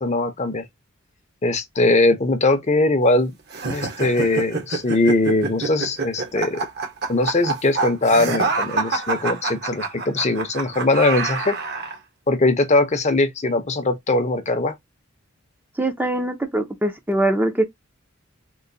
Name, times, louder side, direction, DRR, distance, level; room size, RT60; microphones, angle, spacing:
voice 1, 0.0-0.6 1.4-3.3 3.7-6.6 7.1-11.6 12.3-14.7, left 2 dB, 35° left, 0.7 m, -20 dB
sound 1, 3.5-12.0, right 4 dB, 55° right, 1.0 m, -26 dB
voice 2, 15.8-17.6, right 1 dB, 10° right, 0.5 m, -22 dB
3.8 x 2.6 x 2.6 m
head